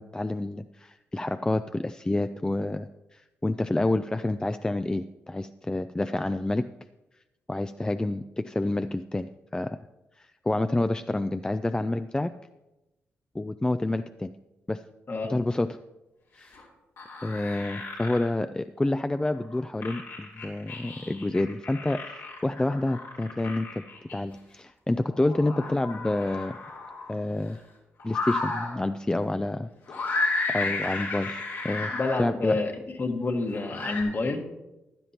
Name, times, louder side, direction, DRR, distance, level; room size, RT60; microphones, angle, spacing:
voice 1, 0.0-6.7 7.5-9.8 10.2-12.3 13.3-14.3 14.7-14.8 15.3-15.8 16.3-16.6 17.2-23.8 24.1-26.6 27.1-27.6 28.0-30.2 30.5-32.6, left 2 dB, 15° left, 10 dB, 0.4 m, -28 dB
voice 2, 15.1-15.4 31.9-34.5, left 3 dB, 45° left, 4 dB, 1.5 m, -28 dB
sound 1, 16.5-16.6 17.0-18.3 19.4-24.1 25.0-27.1 28.0-28.8 29.9-32.2 33.5-34.0, left 3 dB, 85° left, 3.2 m, -33 dB
15.0 x 11.0 x 2.9 m, 0.99 s
supercardioid pair, 55°, 5 cm